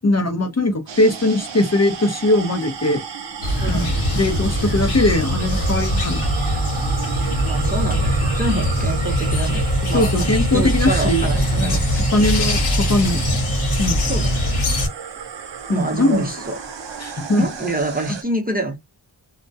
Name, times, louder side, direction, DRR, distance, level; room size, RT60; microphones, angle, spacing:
voice 1, 0.0-3.0 3.7-6.3 8.5-8.6 9.9-11.3 11.6-11.8 12.1-13.5 13.8-14.1 15.7-16.3 17.0-17.5, left 2 dB, 35° left, 0.6 m, -20 dB
sound 1, 0.9-18.2, right 7 dB, 65° right, 0.6 m, -33 dB
sound 2, 3.4-14.9, equal, 85° left, 1.0 m, -21 dB
voice 2, 3.6-3.9 7.4-11.9 12.3-12.6 14.1-14.4 15.7-16.6 17.4-18.8, right 1 dB, 20° right, 0.7 m, -26 dB
2.2 x 2.1 x 2.7 m
wide cardioid pair, 55°, 48 cm